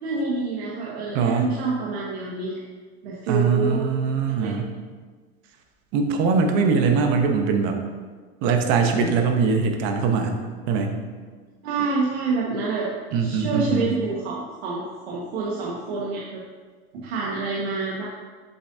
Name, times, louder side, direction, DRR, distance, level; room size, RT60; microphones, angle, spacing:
voice 1, 0.0-2.6 3.0-3.8 4.4-4.5 11.6-12.9 13.2-16.4 16.9-18.0, right 3 dB, 80° right, -5 dB, 1.4 m, -27 dB
voice 2, 1.1-1.5 3.3-4.7 5.9-7.8 8.4-10.3 10.7-11.0 13.1-13.9, right 5 dB, 35° right, 4 dB, 0.8 m, -22 dB
7.8 x 7.6 x 2.7 m, 1.5 s
supercardioid pair, 165°, 32 cm